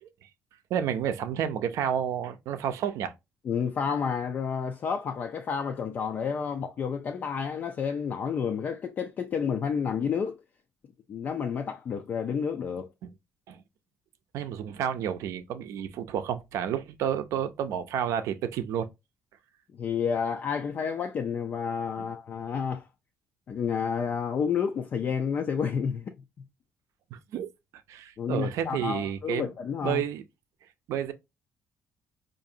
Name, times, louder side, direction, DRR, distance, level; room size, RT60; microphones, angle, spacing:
voice 1, 0.7-3.1 13.0-13.1 13.5-13.6 14.3-18.9 22.0-22.1 27.1-27.5 27.9-29.5 29.8-30.2 30.9-31.1, right 9 dB, 75° right, 0.5 m, -30 dB
voice 2, 3.4-10.4 11.1-12.9 19.8-22.9 23.5-26.1 28.2-30.0, left 6 dB, 35° left, 0.3 m, -30 dB
4.8 x 2.6 x 2.6 m
cardioid pair, 175°, 5 cm